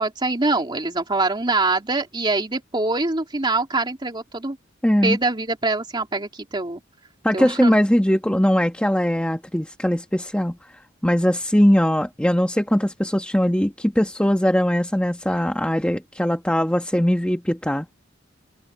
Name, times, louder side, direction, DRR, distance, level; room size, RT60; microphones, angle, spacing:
voice 1, 0.0-4.6 5.0-6.8 7.3-7.8, right 2 dB, 25° right, 2.9 m, -24 dB
voice 2, 4.8-5.2 7.2-10.6 11.0-17.9, equal, 5° left, 1.4 m, -20 dB
head